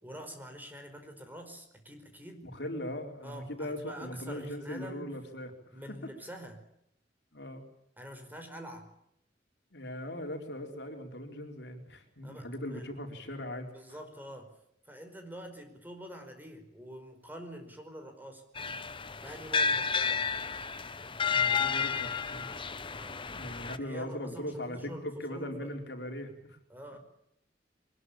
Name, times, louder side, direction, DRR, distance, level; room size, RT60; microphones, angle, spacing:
voice 1, 0.0-2.5 3.2-5.2 5.7-6.6 8.0-8.9 12.2-12.5 12.7-12.8 13.7-14.5 14.8-18.4 19.1-20.2 22.9-23.3 23.7-25.8 26.7-27.0, equal, 10° right, 5 dB, 5.1 m, -46 dB
voice 2, 2.4-5.8 7.3-7.6 9.7-13.7 21.3-22.5 23.3-26.6, left 1 dB, 65° left, 3 dB, 4.4 m, -39 dB
sound 1, 18.6-23.8, left 6 dB, 30° left, 1.0 m, -31 dB
23.5 x 21.0 x 8.9 m, 0.76 s
head